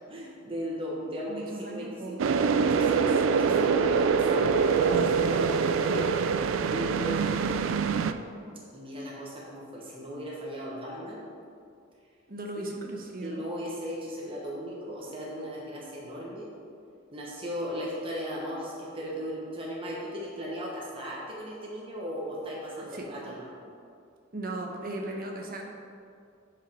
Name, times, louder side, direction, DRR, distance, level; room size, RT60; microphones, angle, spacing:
voice 1, 0.1-6.1 6.6-7.6 8.7-11.2 13.2-16.5 17.1-23.5, equal, 30° right, -4 dB, 1.2 m, -37 dB
voice 2, 1.3-2.2 3.1-3.2 3.5-3.6 12.3-13.4 22.9-23.0 24.3-25.6, right 2 dB, 50° right, 1 dB, 1.1 m, -37 dB
sound 1, 2.2-8.1, right 5 dB, 75° right, 0.4 m, -24 dB
8.8 x 5.1 x 5.0 m, 2.4 s
head